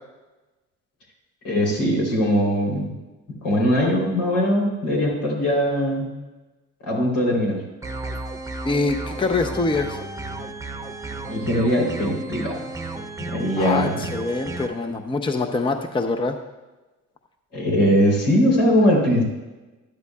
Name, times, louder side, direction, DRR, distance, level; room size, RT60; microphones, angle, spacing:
voice 1, 1.4-2.9 3.4-6.1 6.9-7.6 11.3-12.6 13.3-14.0 17.5-19.2, equal, 85° left, -3 dB, 3.4 m, -20 dB
sound 1, 7.8-14.7, right 2 dB, 10° right, 0.9 m, -33 dB
voice 2, 8.6-10.0 13.6-16.4, left 3 dB, 15° left, 6 dB, 0.6 m, -24 dB
12.0 x 11.0 x 2.3 m, 1.1 s
cardioid pair, 90°, 30 cm